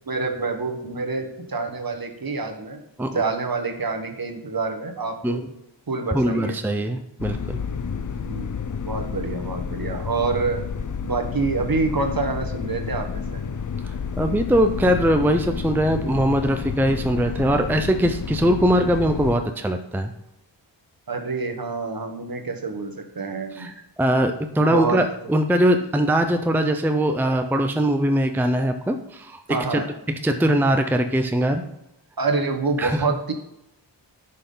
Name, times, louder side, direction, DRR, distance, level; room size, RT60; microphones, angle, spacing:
voice 1, 0.0-5.4 5.9-6.5 7.3-7.4 8.2-8.5 8.8-10.6 11.0-13.4 21.1-23.7 24.6-25.0 29.5-29.8 32.2-33.3, right 3 dB, 50° right, 4 dB, 1.3 m, -27 dB
voice 2, 6.1-7.6 14.1-20.1 23.5-29.8 30.2-31.6 32.8-33.0, right 1 dB, 5° right, 6 dB, 0.6 m, -21 dB
sound 1, 7.2-19.3, left 6 dB, 45° left, 0.6 m, -30 dB
10.5 x 5.7 x 3.9 m, 0.85 s
wide cardioid pair, 85°, 45 cm